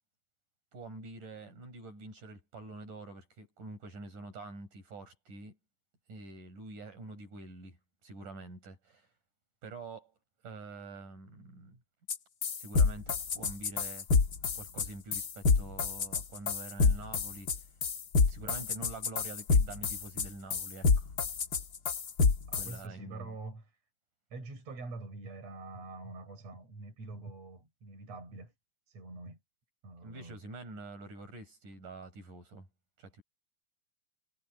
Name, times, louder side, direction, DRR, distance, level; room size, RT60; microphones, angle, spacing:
voice 1, 0.7-5.6 6.1-9.1 9.6-10.1 10.4-11.8 12.6-14.1 14.6-17.5 18.3-21.1 22.6-23.4 30.0-32.7 33.0-33.2, right 3 dB, 70° right, 9.3 m, -46 dB
sound 1, 12.1-12.2 12.4-22.7, left 4 dB, 45° left, 1.3 m, -27 dB
voice 2, 22.5-23.7 24.3-28.5 28.9-29.4 29.8-30.4, right 3 dB, 50° right, 7.4 m, -45 dB
omnidirectional pair, 3.8 m